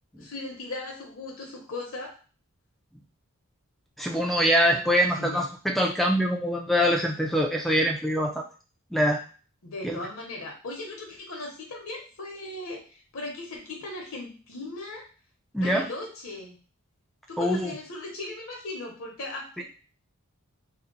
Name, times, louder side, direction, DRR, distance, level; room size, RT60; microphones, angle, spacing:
voice 1, 0.2-2.2 4.7-5.5 9.6-15.1 15.6-16.6 17.3-19.6, left 2 dB, 65° left, 0 dB, 0.8 m, -38 dB
voice 2, 4.0-8.5 8.9-9.2 9.8-10.0 15.5-15.9 17.4-17.7 19.6-19.7, equal, ahead, 1 dB, 0.4 m, -24 dB
2.8 x 2.0 x 3.7 m, 0.36 s
head